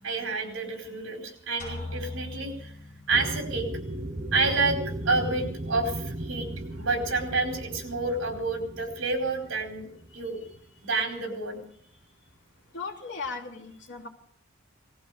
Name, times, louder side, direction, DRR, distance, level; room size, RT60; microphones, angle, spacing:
voice 1, 0.0-2.7 3.1-3.7 4.3-4.8 5.0-6.5 6.7-10.5 10.8-11.6, right 3 dB, 75° right, 3 dB, 4.5 m, -29 dB
sound 1, 1.6-3.4, left 2 dB, 40° left, 6.9 m, -39 dB
sound 2, 3.1-11.0, right 1 dB, 30° right, 1.1 m, -36 dB
voice 2, 12.7-14.1, left 4 dB, 60° left, -1 dB, 3.0 m, -37 dB
19.0 x 15.0 x 4.9 m, 0.66 s
head